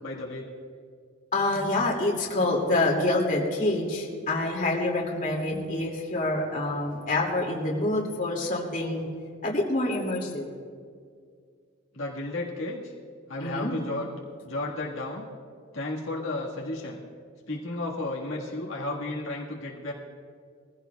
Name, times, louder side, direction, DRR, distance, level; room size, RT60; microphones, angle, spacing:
voice 1, 0.0-0.5 11.9-12.9 13.3-14.1 14.4-15.3 15.7-17.0 17.5-19.9, left 2 dB, 80° left, -4 dB, 1.7 m, -33 dB
voice 2, 1.3-9.1 9.4-10.5 13.4-13.7, left 2 dB, 40° left, -2 dB, 2.3 m, -27 dB
21.5 x 15.5 x 2.3 m, 2.1 s
head